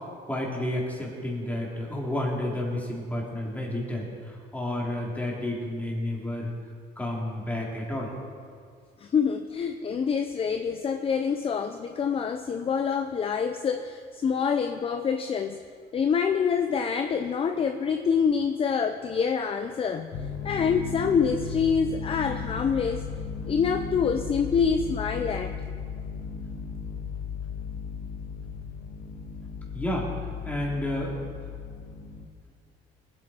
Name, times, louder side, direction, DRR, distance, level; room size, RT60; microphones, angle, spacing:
voice 1, 0.3-4.1 4.5-6.5 7.0-8.1 29.7-30.1 30.4-31.2, left 1 dB, 10° left, -3 dB, 3.2 m, -30 dB
voice 2, 9.0-15.6 15.9-20.1 20.4-23.0 23.5-25.6, left 6 dB, 35° left, 7 dB, 0.6 m, -26 dB
sound 1, 20.1-32.3, left 6 dB, 55° left, 0.9 m, -36 dB
19.5 x 8.7 x 4.4 m, 2.1 s
cardioid pair, 110°, 17 cm